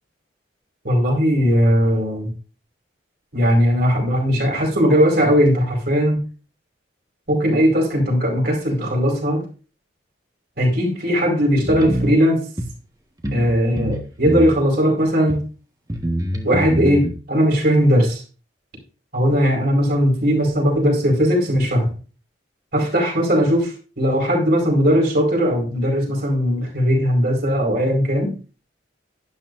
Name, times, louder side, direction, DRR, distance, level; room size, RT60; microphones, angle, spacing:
voice 1, 0.8-2.3 3.3-6.2 7.3-9.5 10.6-12.4 13.3-15.4 16.4-18.2 19.1-21.9 22.7-28.3, equal, 55° right, 1 dB, 4.7 m, -18 dB
sound 1, 11.6-12.1 12.6-12.7 13.2-13.5 13.8-14.6 15.3-15.4 15.9-17.1, right 1 dB, 20° right, 1.4 m, -24 dB
12.0 x 11.5 x 2.6 m, 0.36 s
head